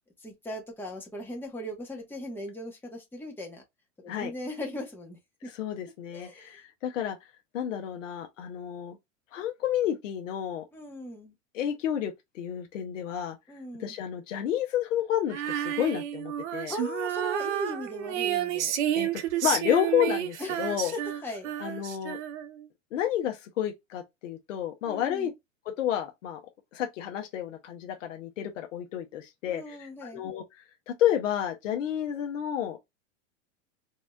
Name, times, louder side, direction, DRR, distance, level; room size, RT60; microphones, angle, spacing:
voice 1, 0.2-3.6 4.0-5.5 6.1-6.6 10.7-11.3 13.5-14.0 16.7-18.7 20.4-21.8 24.8-25.3 29.5-30.2, left 1 dB, 5° left, 1.2 m, -39 dB
voice 2, 5.5-7.2 7.5-9.0 9.3-10.6 11.5-13.4 13.8-16.7 18.9-20.9 21.6-22.2 22.9-25.3 25.8-26.4 26.7-30.4 30.9-32.9, left 10 dB, 75° left, 0.9 m, -30 dB
Female singing, 15.3-22.6, right 11 dB, 60° right, 0.8 m, -31 dB
3.5 x 3.0 x 2.3 m
hypercardioid pair, 105°, 39 cm